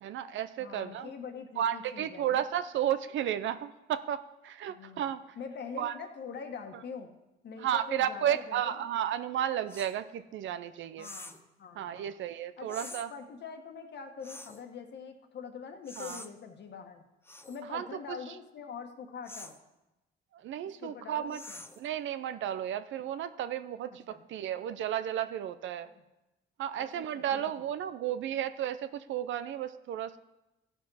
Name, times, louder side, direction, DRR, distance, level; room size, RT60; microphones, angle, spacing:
voice 1, 0.0-1.1 1.6-5.2 5.8-5.9 7.6-11.1 11.8-13.1 16.0-16.2 17.7-18.3 20.3-21.4 21.8-25.9 26.6-30.2, right 10 dB, 75° right, 12 dB, 0.5 m, -33 dB
voice 2, 0.6-2.4 4.7-7.1 7.4-8.6 11.0-12.2 12.6-17.0 17.5-19.5 20.8-21.6 24.1-24.2 26.8-27.4, left 6 dB, 60° left, 5 dB, 1.4 m, -44 dB
sound 1, 9.7-10.0 11.0-11.5 12.7-13.1 14.2-14.6 15.9-16.3 17.3-17.6 19.3-19.6 21.3-21.9, left 2 dB, 10° left, 0.8 m, -46 dB
14.5 x 5.6 x 5.6 m, 0.99 s
cardioid pair, 90°, 20 cm